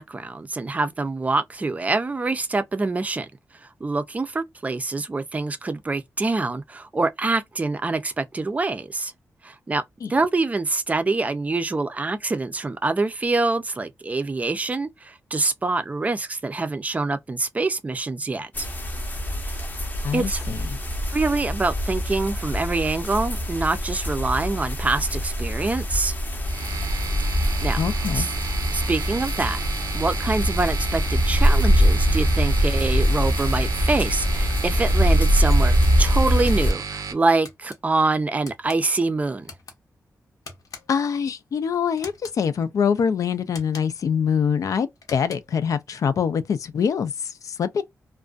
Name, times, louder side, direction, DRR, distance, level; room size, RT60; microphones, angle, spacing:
voice 1, 0.0-3.3 3.6-9.1 9.4-9.8 10.1-18.7 20.1-20.4 21.1-26.1 27.3-27.8 28.1-28.3 28.7-29.6 29.9-39.5, right 3 dB, 25° right, 0.4 m, -25 dB
sound 1, 18.5-36.7, equal, 30° left, 0.7 m, -23 dB
voice 2, 20.0-20.6 27.7-28.3 40.9-47.8, left 7 dB, 70° left, 0.4 m, -24 dB
sound 2, 26.4-37.1, right 5 dB, 70° right, 0.6 m, -33 dB
sound 3, 36.5-36.8 37.4-37.8 38.4-38.8 39.4-39.8 40.4-41.1 42.0-42.4 43.5-44.1 45.0-45.6, left 5 dB, 85° left, 0.8 m, -43 dB
2.4 x 2.2 x 2.3 m
wide cardioid pair, 105°, 6 cm